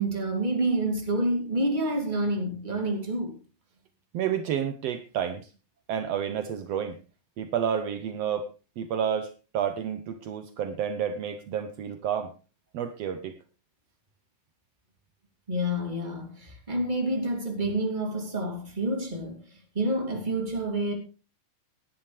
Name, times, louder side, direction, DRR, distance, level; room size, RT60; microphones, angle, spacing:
voice 1, 0.0-3.4 15.5-20.9, right 1 dB, 15° right, 2.4 m, -28 dB
voice 2, 4.1-5.4 5.9-7.0 7.4-8.5 8.8-12.3 12.7-13.4, right 8 dB, 80° right, 1.4 m, -30 dB
18.5 x 10.5 x 3.3 m
omnidirectional pair, 4.2 m